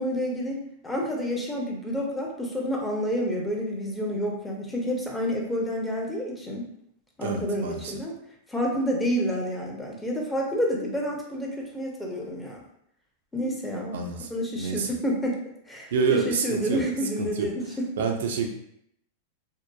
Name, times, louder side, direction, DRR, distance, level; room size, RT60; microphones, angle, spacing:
voice 1, 0.0-6.7 7.2-8.1 8.5-12.6 13.3-14.0 14.3-15.4 15.7-17.9, equal, 10° left, -1 dB, 0.5 m, -29 dB
voice 2, 7.2-7.9 13.9-14.3 14.6-14.9 15.9-16.8 17.2-17.5 18.0-18.5, right 5 dB, 80° right, 3 dB, 0.4 m, -27 dB
2.7 x 2.2 x 2.2 m, 0.73 s
supercardioid pair, 135°, 0 cm